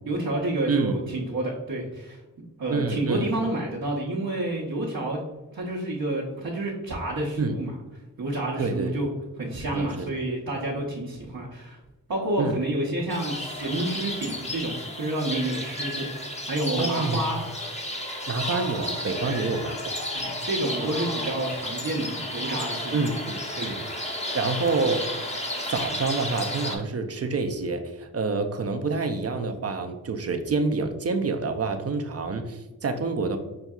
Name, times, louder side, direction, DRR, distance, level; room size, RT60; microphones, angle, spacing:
voice 1, 0.1-2.2 2.6-5.2 5.5-7.8 8.2-9.1 9.3-11.8 12.1-17.4 17.8-17.9 19.2-19.4 20.1-23.1 23.6-23.7, right 1 dB, 75° right, -5 dB, 0.8 m, -29 dB
voice 2, 0.7-1.0 2.7-3.3 7.4-7.6 8.6-9.1 9.7-10.1 12.4-12.6 16.8-17.2 18.3-20.0 20.8-20.9 22.9-23.8 24.3-25.1 25.7-33.4, right 4 dB, 45° right, 6 dB, 0.5 m, -27 dB
sound 1, 13.1-26.8, left 1 dB, 20° left, 0.7 m, -32 dB
5.7 x 2.6 x 2.3 m, 1.1 s
cardioid pair, 65°, 35 cm